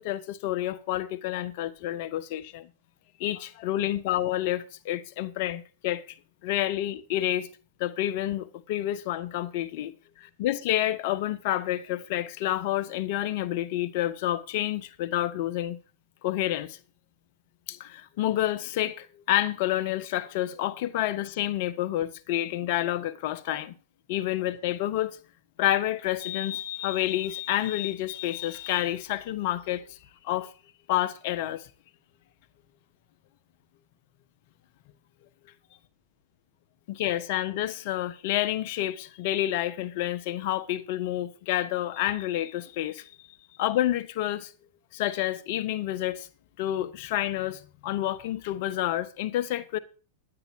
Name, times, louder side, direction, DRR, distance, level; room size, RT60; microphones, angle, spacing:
voice 1, 0.0-2.7 3.2-6.0 6.4-7.5 7.8-9.9 10.2-15.8 16.2-16.8 17.7-23.7 24.1-25.2 25.6-29.8 30.2-30.5 30.9-31.6 36.9-43.1 43.6-44.5 44.9-46.3 46.6-49.8, left 13 dB, 55° left, 1.3 m, -29 dB
9.8 x 9.7 x 4.8 m
hypercardioid pair, 110°, 0 cm